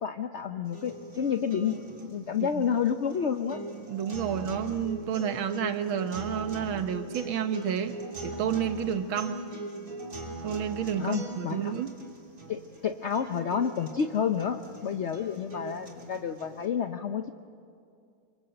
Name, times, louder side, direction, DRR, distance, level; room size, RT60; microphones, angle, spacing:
voice 1, 0.0-3.6 11.0-11.7 12.5-17.3, left 7 dB, 60° left, 7 dB, 0.7 m, -30 dB
sound 1, 0.6-16.7, right 1 dB, 45° right, 3.8 m, -41 dB
voice 2, 3.9-7.9 8.2-9.4 10.4-11.9, right 8 dB, 85° right, 9 dB, 1.9 m, -30 dB
26.0 x 25.5 x 7.8 m, 2.4 s
omnidirectional pair, 2.2 m